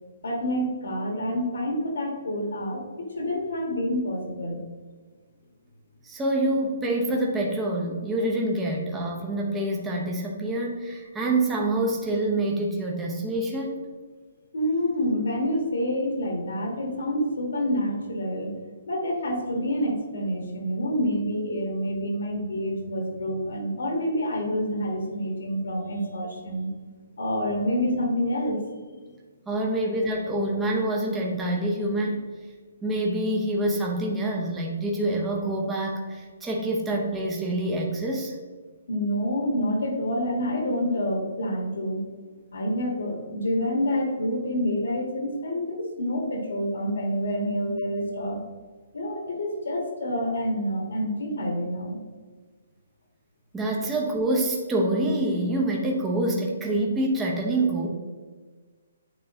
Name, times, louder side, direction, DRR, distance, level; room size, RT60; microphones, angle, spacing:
voice 1, 0.2-4.6 14.5-18.5 18.9-26.7 27.2-28.6 29.0-29.1 38.9-42.0 42.5-48.4 48.9-52.0, equal, 80° left, 2 dB, 1.7 m, -27 dB
voice 2, 6.0-13.7 29.5-32.2 32.8-38.4 53.5-57.9, right 1 dB, 10° right, -2 dB, 0.7 m, -26 dB
8.9 x 3.1 x 3.7 m, 1.4 s
hypercardioid pair, 160°, 0 cm